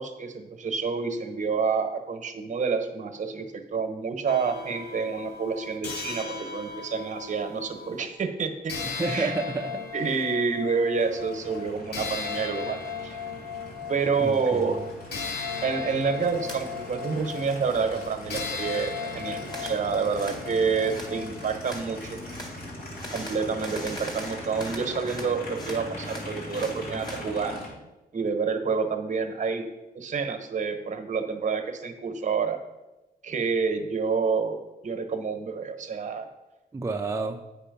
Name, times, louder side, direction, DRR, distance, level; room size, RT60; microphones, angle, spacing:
voice 1, 0.0-8.7 9.0-9.3 9.9-12.8 13.0-13.2 13.9-14.8 15.6-22.2 23.1-27.6 28.1-29.7 29.9-32.6 33.2-34.6 34.8-36.3, right 5 dB, 50° right, 7 dB, 1.0 m, -28 dB
sound 1, 4.3-8.0 8.7-21.4, left 5 dB, 85° left, 1.2 m, -36 dB
voice 2, 8.8-10.1 14.2-14.8 36.7-37.4, right 3 dB, 15° right, 3 dB, 0.4 m, -31 dB
Aircraft, 11.0-27.7, left 1 dB, 65° left, 2.2 m, -41 dB
sound 2, 16.4-16.6 17.0-17.8 18.1-18.5 19.5-19.8 20.2-20.4 20.9-21.1 21.6-21.9 22.3-22.5 23.0-25.3 25.6-27.2, equal, 25° left, 1.7 m, -40 dB
8.5 x 5.3 x 5.2 m, 1.0 s
cardioid pair, 110°, 17 cm